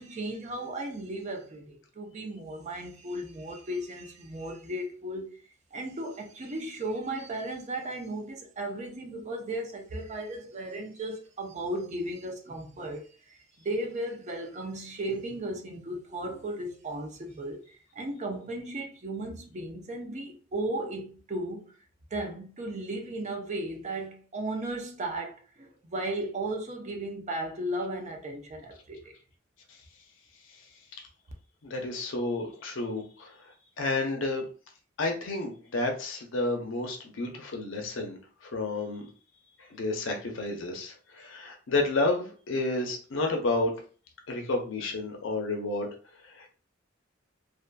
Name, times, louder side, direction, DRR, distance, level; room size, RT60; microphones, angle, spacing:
voice 1, 0.0-5.4 5.7-17.6 18.0-21.6 22.1-29.1, right 1 dB, 35° right, 0.5 m, -35 dB
voice 2, 31.6-33.3 33.8-34.5 35.0-38.2 38.5-39.0 39.7-43.7 44.3-45.9 46.3-46.5, left 2 dB, 80° left, 0.6 m, -30 dB
2.5 x 2.5 x 2.2 m
head